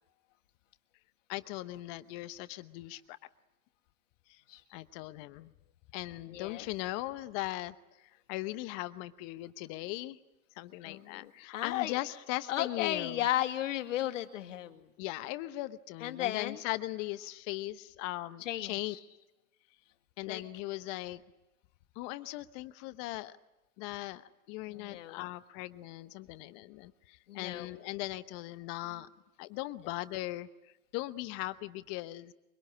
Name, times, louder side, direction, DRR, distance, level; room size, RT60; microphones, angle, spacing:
voice 1, 1.3-3.2 4.7-5.5 5.9-7.7 8.3-10.2 10.6-13.2 15.0-18.9 20.2-21.2 22.0-23.3 23.8-24.2 24.5-29.1 29.4-30.5 30.9-32.3, left 18 dB, 35° left, 13 dB, 1.0 m, -39 dB
voice 2, 6.3-6.7 10.8-12.0 12.5-14.9 16.0-16.6 18.4-19.0 20.3-20.4 24.7-25.2 27.3-27.8, left 13 dB, 60° left, 6 dB, 2.2 m, -35 dB
24.5 x 23.5 x 9.8 m, 0.99 s
hypercardioid pair, 120°, 42 cm